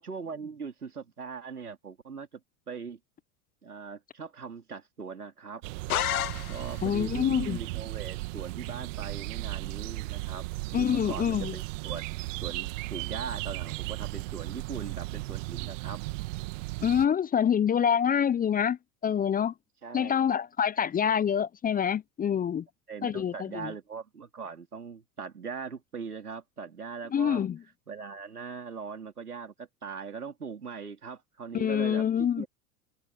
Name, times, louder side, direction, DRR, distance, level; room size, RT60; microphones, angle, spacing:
voice 1, 0.0-2.4 2.7-3.0 3.6-5.6 6.5-10.4 10.8-12.1 12.4-16.0 19.8-20.2 22.9-27.5 27.9-32.5, right 5 dB, 85° right, 4.2 m, -40 dB
sound 1, 5.6-17.1, right 23 dB, 55° right, 2.0 m, -36 dB
sound 2, 5.9-7.0, left 12 dB, 75° left, 1.1 m, -30 dB
voice 2, 6.8-7.6 10.7-11.5 16.8-18.8 19.0-19.5 19.9-22.6 23.0-23.7 27.1-27.6 31.5-32.4, left 8 dB, 20° left, 0.8 m, -26 dB
figure-of-eight pair, 85°, 44 cm